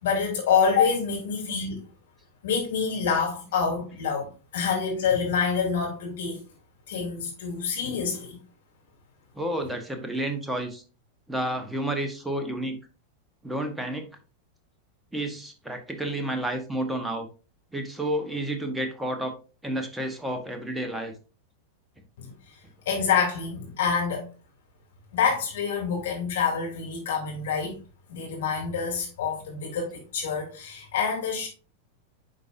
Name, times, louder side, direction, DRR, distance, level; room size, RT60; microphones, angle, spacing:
voice 1, 0.0-1.8 2.4-6.4 6.9-8.4 22.2-22.3 22.9-24.3 25.1-27.8 28.1-31.5, left 6 dB, 60° left, 2.7 m, -27 dB
voice 2, 9.3-10.8 11.3-12.8 13.4-14.1 15.1-17.3 17.7-19.3 19.6-21.1, right 1 dB, 5° right, 1.1 m, -30 dB
9.8 x 4.0 x 2.6 m
figure-of-eight pair, 90°, 0 cm